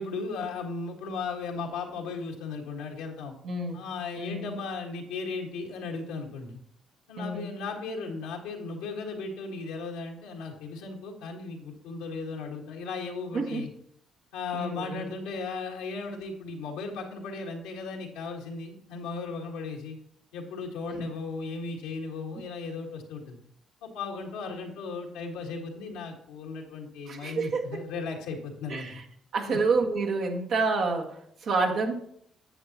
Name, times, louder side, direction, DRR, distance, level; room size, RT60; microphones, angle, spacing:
voice 1, 0.0-3.3 3.7-6.6 7.1-13.7 14.3-19.9 20.3-23.4 23.8-29.0 29.5-29.6, left 4 dB, 90° left, 0 dB, 1.7 m, -36 dB
voice 2, 3.4-3.8 4.2-4.5 7.2-7.5 13.3-13.7 14.5-15.1 20.9-21.1 27.1-27.8 28.7-29.0 29.3-32.0, right 3 dB, 65° right, 1 dB, 1.4 m, -29 dB
9.9 x 7.9 x 2.9 m, 0.69 s
supercardioid pair, 60°, 0 cm